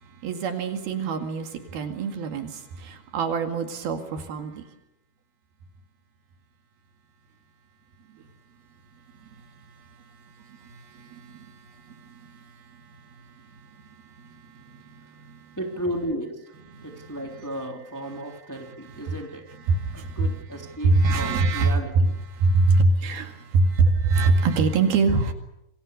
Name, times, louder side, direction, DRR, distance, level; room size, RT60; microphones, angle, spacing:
voice 1, 0.0-4.7 8.1-8.3 9.1-9.4 9.9-10.0 10.3-15.6 16.7-17.1 18.6-19.2 19.7-25.3, right 3 dB, 70° right, 3.9 m, -25 dB
voice 2, 15.6-16.4 16.8-19.4 19.9-22.1, equal, 5° left, 2.8 m, -34 dB
28.0 x 23.5 x 6.8 m
omnidirectional pair, 4.6 m